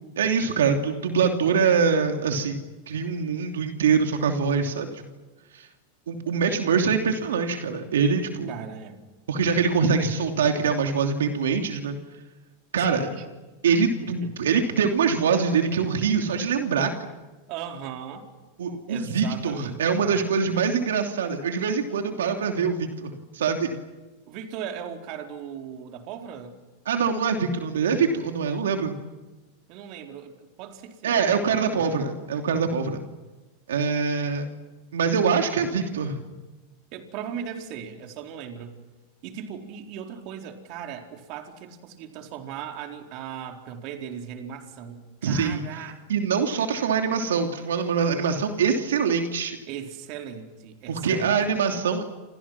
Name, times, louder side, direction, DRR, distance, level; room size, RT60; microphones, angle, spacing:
voice 1, 0.2-5.0 5.5-5.7 6.1-8.5 9.3-12.0 12.7-13.1 13.6-16.9 18.6-23.7 26.9-29.0 31.0-33.0 33.7-34.4 34.9-36.2 45.2-45.6 46.1-49.6 50.9-52.1, right 5 dB, 85° right, 3 dB, 3.0 m, -24 dB
voice 2, 8.5-9.0 12.8-13.2 14.0-14.3 17.5-18.3 18.9-20.4 24.3-26.5 29.7-32.0 36.9-38.8 39.2-46.1 49.7-51.6, right 8 dB, 55° right, 3 dB, 4.2 m, -38 dB
29.5 x 29.0 x 6.1 m, 1.1 s
hypercardioid pair, 115°, 0 cm